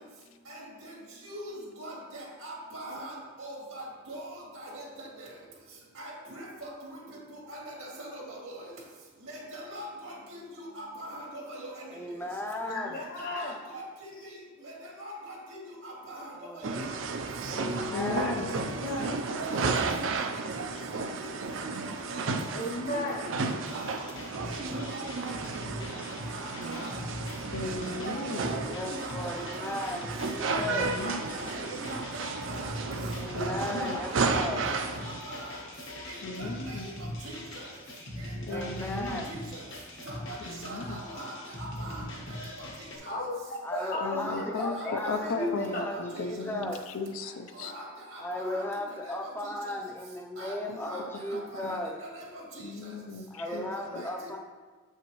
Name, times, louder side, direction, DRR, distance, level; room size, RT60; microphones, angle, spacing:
voice 1, 0.5-0.9 1.2-5.3 6.0-7.0 7.3-8.7 9.2-12.0 12.9-14.3 14.6-16.7 18.0-18.6 18.9-19.7 20.2-20.7 20.9-22.3 22.9-23.3 23.7-24.0 24.4-25.8 26.2-26.9 27.6-29.9 30.5-31.5 31.8-32.8 33.3-35.6 36.1-37.7 38.2-39.6 40.0-42.7 43.0-43.1 43.7-45.3 45.6-46.2 47.5-47.8 48.1-48.6 48.9-49.3 49.7-49.8 50.4-51.0 51.3-52.4 52.8-52.9 53.5-54.1, right 1 dB, 85° right, -3 dB, 2.1 m, -43 dB
voice 2, 11.9-13.0 16.3-16.7 17.4-18.5 28.6-30.9 33.1-34.6 38.5-39.3 43.6-46.8 48.2-51.9 53.3-54.4, left 1 dB, 10° left, 2 dB, 0.5 m, -36 dB
voice 3, 12.7-13.6 18.4-19.2 22.5-23.2 24.4-24.5 43.1-43.6 43.9-44.9 45.3-45.9, left 1 dB, 45° left, 0 dB, 1.0 m, -35 dB
sound 1, 16.6-35.2, right 4 dB, 65° right, 0.5 m, -33 dB
voice 4, 17.9-18.5 27.5-28.5 30.6-31.3 33.3-34.0 36.2-36.9 38.5-39.2 40.5-41.0 44.0-47.7 50.7-50.8 51.3-51.8 52.6-54.0, left 3 dB, 75° left, 7 dB, 0.5 m, -36 dB
sound 2, 23.7-43.0, left 1 dB, 60° left, 1.2 m, -41 dB
7.9 x 5.7 x 3.0 m, 1.4 s
head